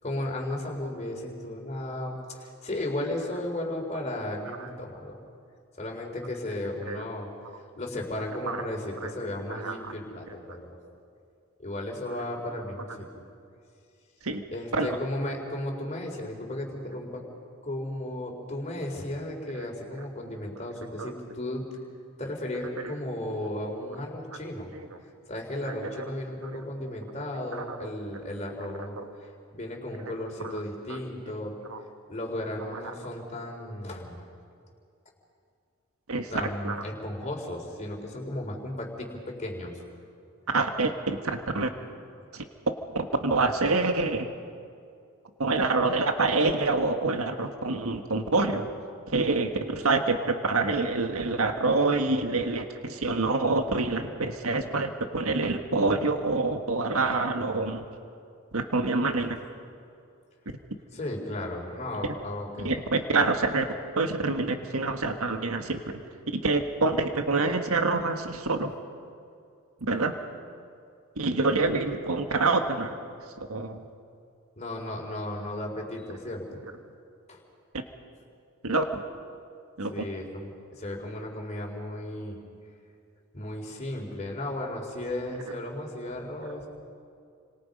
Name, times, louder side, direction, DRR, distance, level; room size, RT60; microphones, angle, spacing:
voice 1, 0.0-5.2 5.8-7.3 7.8-10.8 11.6-13.2 14.5-17.2 17.6-21.7 22.2-24.7 25.3-31.6 32.1-34.2 36.3-39.8 42.2-42.3 60.9-62.7 74.6-76.5 77.3-77.4 79.9-82.4 83.3-86.7, left 1 dB, 30° left, 0 dB, 4.3 m, -35 dB
voice 2, 25.7-26.0 26.4-26.5 27.5-27.9 29.0-29.1 30.4-30.5 31.7-31.8 36.1-36.3 36.6-36.8 40.5-41.7 42.3-42.4 43.0-44.3 45.4-48.7 49.1-57.8 58.5-59.4 62.0-62.1 62.6-63.7 64.0-65.8 66.3-68.7 69.9-70.1 71.2-73.0 73.5-73.8 78.6-78.9 79.8-80.0, right 3 dB, 85° right, 6 dB, 1.6 m, -26 dB
30.0 x 26.0 x 5.4 m, 2.4 s
head